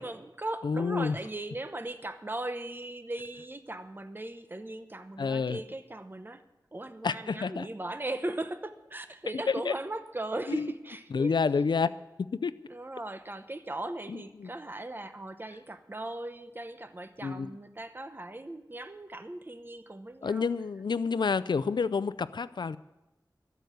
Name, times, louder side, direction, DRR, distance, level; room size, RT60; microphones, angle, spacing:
voice 1, 0.0-6.4 6.7-11.3 12.7-20.5, right 2 dB, 30° right, 10 dB, 0.9 m, -38 dB
voice 2, 0.6-1.1 5.2-5.6 7.0-7.6 9.3-9.7 10.5-10.7 11.1-11.9 12.4-12.5 14.1-14.5 17.2-17.5 20.2-22.8, left 5 dB, 85° left, 16 dB, 0.4 m, -29 dB
13.0 x 8.0 x 9.3 m, 0.99 s
wide cardioid pair, 65°, 7 cm